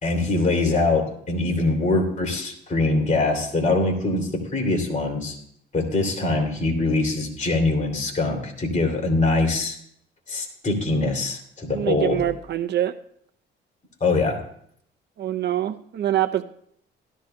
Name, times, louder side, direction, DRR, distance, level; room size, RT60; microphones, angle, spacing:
voice 1, 0.0-5.3 5.7-9.8 10.3-12.2 14.0-14.4, left 2 dB, 35° left, 2 dB, 2.8 m, -23 dB
voice 2, 11.7-12.9 15.2-16.4, right 12 dB, 60° right, 11 dB, 0.6 m, -24 dB
16.5 x 13.0 x 2.2 m, 0.67 s
cardioid pair, 90°, 20 cm